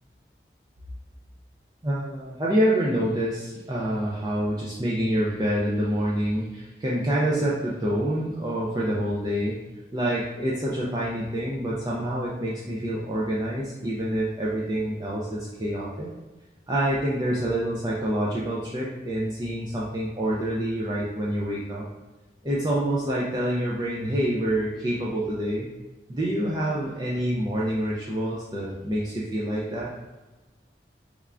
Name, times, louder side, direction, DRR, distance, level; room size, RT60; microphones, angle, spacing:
voice 1, 1.8-9.6 9.9-16.1 16.7-21.9 22.4-25.7 26.1-29.9, right 1 dB, 25° right, -5 dB, 0.4 m, -27 dB
3.4 x 3.2 x 2.4 m, 1.1 s
head